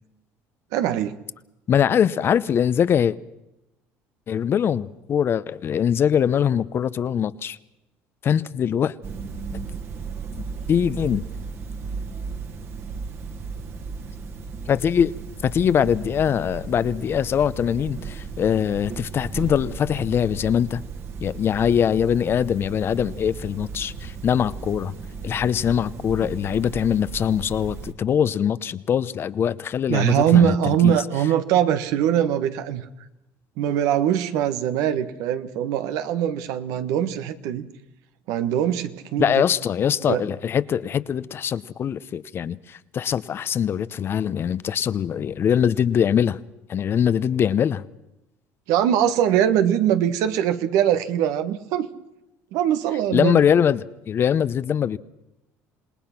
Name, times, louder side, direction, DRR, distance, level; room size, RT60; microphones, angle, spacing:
voice 1, 0.7-1.2 29.9-32.9 33.6-37.7 38.3-39.4 40.1-40.2 48.7-51.9 52.5-53.4, right 10 dB, 75° right, 1.4 m, -22 dB
voice 2, 1.7-3.2 4.3-7.6 8.2-8.9 10.7-11.2 14.7-15.1 15.4-20.8 21.2-24.9 25.2-30.6 30.8-31.0 39.2-46.4 46.7-47.8 53.1-55.0, left 8 dB, 45° left, 0.8 m, -22 dB
sound 1, 9.0-27.9, right 5 dB, 50° right, 2.1 m, -35 dB
27.5 x 19.0 x 5.9 m
supercardioid pair, 95°, 6 cm